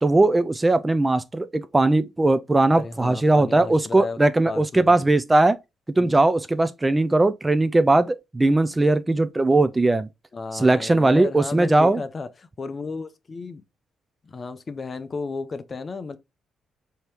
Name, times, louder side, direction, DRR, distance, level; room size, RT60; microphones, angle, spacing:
voice 1, 0.0-5.6 6.0-10.1 10.5-12.0, right 2 dB, 15° right, 0.3 m, -19 dB
voice 2, 2.7-4.2 4.5-4.9 6.0-6.2 10.3-13.6 14.2-16.2, left 4 dB, 35° left, 0.5 m, -33 dB
4.5 x 2.8 x 3.3 m
cardioid pair, 90°, 0 cm